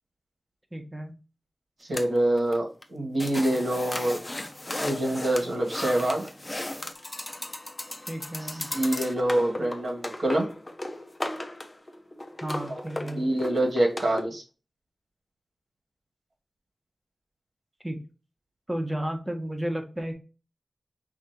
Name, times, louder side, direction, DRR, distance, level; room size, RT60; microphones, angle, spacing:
voice 1, 0.7-1.1 8.1-8.8 12.4-13.3 17.8-18.0 18.7-20.1, right 1 dB, 15° right, 4 dB, 1.2 m, -33 dB
voice 2, 1.8-4.2 4.8-6.3 8.7-10.5 12.7-12.8 13.1-14.4, right 1 dB, 70° right, 0 dB, 1.9 m, -26 dB
sound 1, 1.9-2.6 2.8-2.9 3.2-14.2, left 1 dB, 30° left, 0.8 m, -36 dB
5.9 x 2.7 x 2.9 m, 0.32 s
cardioid pair, 55°, 0 cm